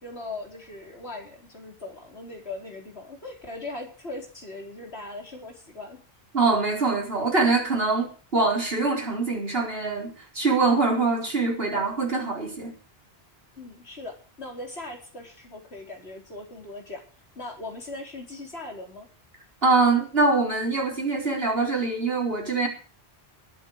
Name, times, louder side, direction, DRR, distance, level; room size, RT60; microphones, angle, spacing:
voice 1, 0.0-6.0 13.6-17.0 17.4-19.1, left 2 dB, 85° left, 1 dB, 4.7 m, -39 dB
voice 2, 6.3-12.7 19.6-22.7, right 3 dB, 70° right, 0 dB, 4.8 m, -24 dB
19.5 x 8.8 x 6.6 m, 0.39 s
omnidirectional pair, 1.1 m